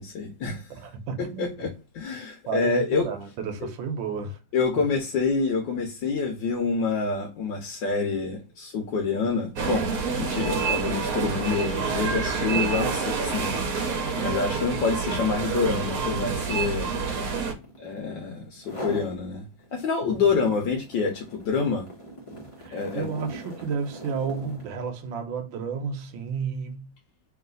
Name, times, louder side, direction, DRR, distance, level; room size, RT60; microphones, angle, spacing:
voice 1, 0.0-0.7 1.2-3.1 4.5-13.9 14.2-17.0 17.8-19.5 19.7-21.9 22.7-23.1, left 4 dB, 70° left, 1.4 m, -27 dB
voice 2, 0.7-1.7 2.5-4.4 14.1-14.5 22.6-26.9, right 5 dB, 80° right, 1.5 m, -32 dB
sound 1, 9.2-9.3 9.7-18.1 18.6-19.2 19.6-24.8, right 1 dB, 25° left, 0.8 m, -43 dB
sound 2, 9.6-17.5, right 5 dB, 55° right, 1.2 m, -27 dB
3.2 x 3.0 x 3.7 m
omnidirectional pair, 2.1 m